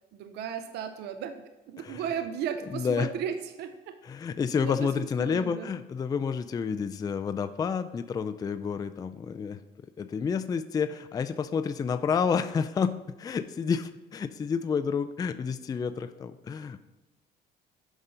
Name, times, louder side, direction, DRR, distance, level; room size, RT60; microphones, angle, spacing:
voice 1, 0.1-4.0 4.6-5.7, right 8 dB, 75° right, 9 dB, 0.6 m, -35 dB
voice 2, 2.7-3.1 4.0-9.6 10.0-16.8, left 6 dB, 20° left, 10 dB, 0.3 m, -29 dB
8.0 x 5.6 x 3.8 m, 1.1 s
cardioid pair, 110°, 17 cm